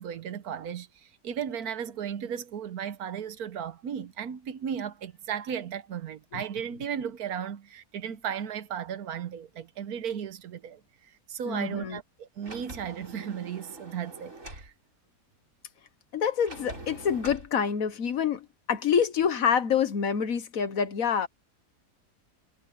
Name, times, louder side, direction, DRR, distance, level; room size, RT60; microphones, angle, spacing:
voice 1, 0.0-10.8 11.3-14.7, right 8 dB, 70° right, 1.3 m, -35 dB
voice 2, 11.4-12.0 16.1-21.3, left 7 dB, 60° left, 1.4 m, -27 dB
Sliding door, 12.4-14.7 16.5-17.5, right 1 dB, 50° right, 6.5 m, -44 dB
omnidirectional pair, 1.7 m